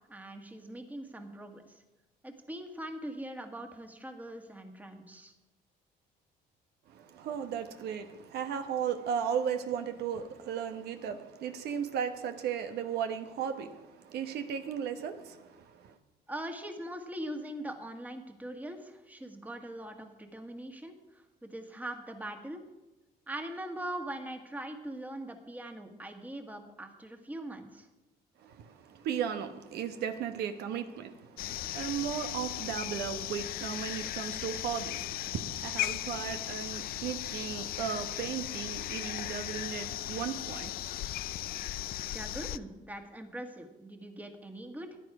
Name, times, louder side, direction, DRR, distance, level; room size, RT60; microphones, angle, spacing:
voice 1, 0.1-1.8 2.2-5.3 16.3-22.6 23.3-27.9 42.0-45.0, right 1 dB, 10° right, 1.6 m, -42 dB
voice 2, 6.9-15.9 28.4-41.1, right 8 dB, 75° right, 1.1 m, -36 dB
sound 1, 31.4-42.6, left 14 dB, 65° left, 0.4 m, -37 dB
15.0 x 10.5 x 4.8 m
cardioid pair, 110°, 17 cm